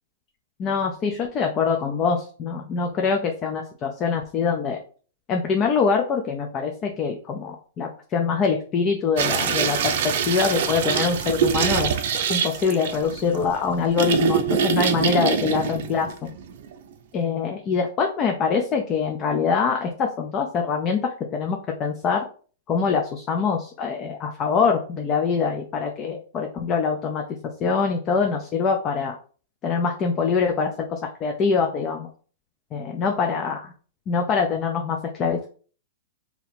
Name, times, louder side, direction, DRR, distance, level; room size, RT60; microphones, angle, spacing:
voice 1, 0.6-4.8 5.3-9.9 10.3-11.9 12.3-16.3 17.1-22.2 22.7-27.2 27.6-29.2 29.6-32.1 32.7-33.6 34.1-35.5, left 5 dB, 30° left, 3 dB, 0.5 m, -24 dB
urinal flush roomy aimed at wall closeup and super-closeup, 9.2-16.8, right 7 dB, 60° right, 0.6 m, -24 dB
2.8 x 2.8 x 4.1 m, 0.42 s
hypercardioid pair, 130°, 0 cm